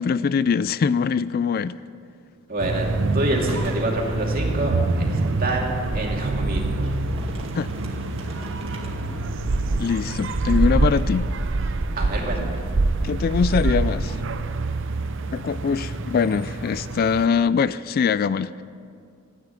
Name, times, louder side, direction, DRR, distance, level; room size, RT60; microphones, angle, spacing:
voice 1, 0.0-1.8 7.5-7.7 9.8-11.3 13.0-14.2 15.3-18.6, left 6 dB, 45° left, 17 dB, 0.3 m, -22 dB
voice 2, 2.5-2.9 3.1-6.8 12.0-12.6, right 1 dB, 45° right, -1 dB, 2.5 m, -27 dB
sound 1, 2.6-17.3, right 2 dB, 60° right, 0.7 m, -25 dB
Boom, 3.4-13.0, right 1 dB, 30° right, 2.2 m, -38 dB
14.0 x 9.2 x 8.9 m, 2.3 s
head